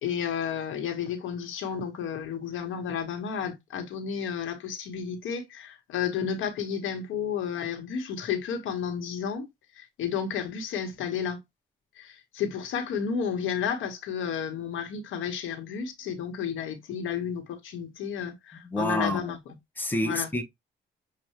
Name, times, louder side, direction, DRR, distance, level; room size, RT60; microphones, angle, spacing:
voice 1, 0.0-9.5 9.8-11.4 12.0-19.4 20.0-20.3, left 7 dB, 80° left, 1.4 m, -32 dB
voice 2, 18.7-19.2 19.8-20.4, left 1 dB, 10° left, 1.0 m, -27 dB
6.8 x 2.5 x 3.0 m
cardioid pair, 90°, 20 cm